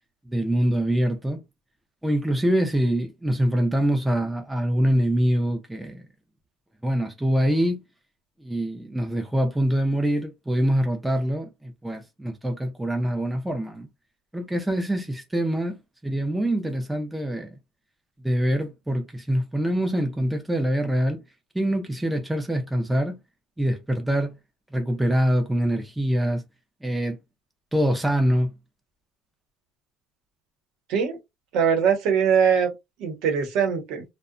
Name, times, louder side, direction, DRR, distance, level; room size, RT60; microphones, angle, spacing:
voice 1, 0.3-1.4 2.0-6.0 6.8-7.8 8.4-13.9 14.3-17.6 18.2-21.2 21.5-23.2 23.6-24.3 24.7-26.4 26.8-27.2 27.7-28.5, equal, 5° right, 0.3 m, -24 dB
voice 2, 31.5-32.7 33.0-34.0, right 7 dB, 55° right, 0.8 m, -21 dB
2.7 x 2.1 x 2.4 m
cardioid pair, 175°, 0 cm